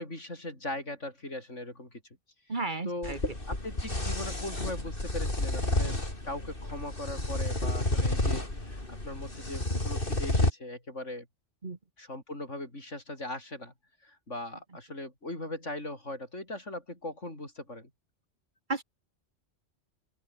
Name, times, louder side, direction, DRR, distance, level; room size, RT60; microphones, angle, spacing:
voice 1, 0.0-2.0 2.8-3.2 3.5-6.0 6.2-8.8 9.0-11.3 12.0-13.7 14.0-17.9, left 1 dB, 80° left, 7.6 m, -39 dB
voice 2, 2.5-3.2 11.6-11.8 18.7-18.8, right 3 dB, 40° right, 1.9 m, -33 dB
sound 1, 3.0-10.5, left 2 dB, 45° left, 5.1 m, -30 dB
open air
omnidirectional pair, 1.2 m